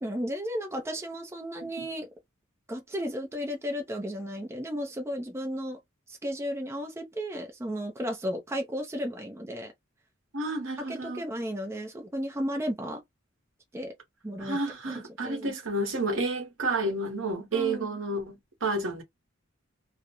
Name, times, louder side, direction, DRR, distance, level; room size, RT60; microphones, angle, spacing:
voice 1, 0.0-2.1 2.7-5.8 6.1-9.7 10.9-13.0 13.7-13.9 14.2-14.6 14.9-15.5 17.5-17.9, equal, 15° right, 0.5 m, -34 dB
voice 2, 10.3-11.2 14.4-19.0, right 2 dB, 70° right, 0.9 m, -30 dB
2.4 x 2.0 x 2.8 m
head